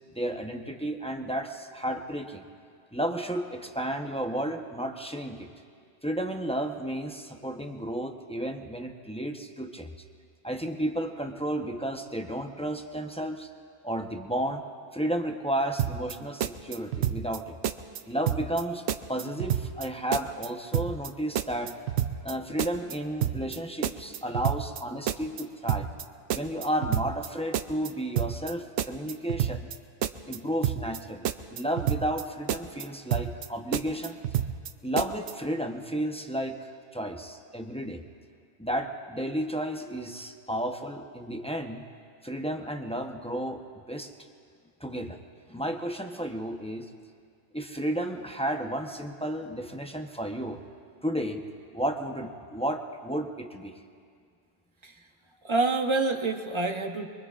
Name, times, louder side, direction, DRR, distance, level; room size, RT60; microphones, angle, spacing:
voice 1, 0.1-2.4 2.9-5.5 6.0-9.9 10.4-13.5 13.8-14.6 14.9-17.6 18.1-18.8 19.1-21.7 22.2-25.9 26.3-29.7 30.3-34.2 34.8-38.0 38.6-41.8 42.2-43.6 43.9-44.1 44.8-45.2 45.5-46.9 47.5-50.6 51.0-51.5 51.7-53.8, right 1 dB, 5° left, 3 dB, 0.7 m, -32 dB
sound 1, 15.8-16.1 16.4-17.4 17.6-18.0 18.3-18.6 18.9-19.9 20.1-20.5 20.7-21.1 21.3-22.3 22.6-22.9 23.2-23.6 23.8-24.8 25.1-25.4 25.7-26.0 26.3-27.3 27.5-27.9 28.2-28.5 28.8-29.7 30.0-30.4 30.6-31.0 31.2-32.2 32.5-32.8 33.1-33.5 33.7-34.7 35.0-35.3, right 10 dB, 90° right, 0.9 m, -29 dB
voice 2, 55.4-57.1, right 3 dB, 30° right, 5 dB, 0.9 m, -27 dB
24.5 x 23.5 x 2.5 m, 2.2 s
omnidirectional pair, 1.1 m